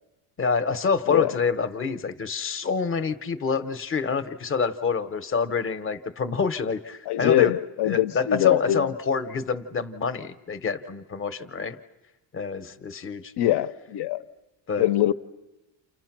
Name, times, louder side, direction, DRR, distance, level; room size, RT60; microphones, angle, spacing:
voice 1, 0.4-7.6 7.8-11.8 12.3-13.3 14.7-14.9, left 5 dB, 25° left, 0.9 m, -27 dB
voice 2, 7.1-8.9 13.4-14.2 14.8-15.1, left 13 dB, 60° left, 0.8 m, -23 dB
30.0 x 28.5 x 6.0 m
cardioid pair, 150°, 46 cm